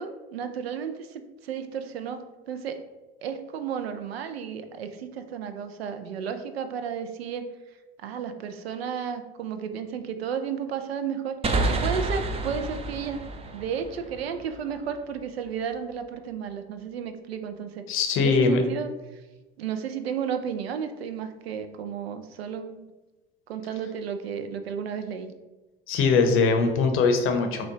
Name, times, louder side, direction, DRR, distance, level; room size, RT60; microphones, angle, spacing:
voice 1, 0.0-2.2 2.5-2.8 3.2-7.5 8.0-11.3 11.7-13.2 13.5-17.8 18.2-18.9 19.6-22.9 23.5-25.3, right 7 dB, 75° right, 8 dB, 0.5 m, -33 dB
sound 1, 11.4-14.9, right 2 dB, 20° right, 0.5 m, -29 dB
voice 2, 17.9-18.6 25.9-27.7, left 4 dB, 45° left, 6 dB, 0.7 m, -21 dB
6.0 x 2.2 x 3.6 m, 1.1 s
figure-of-eight pair, 65°, 31 cm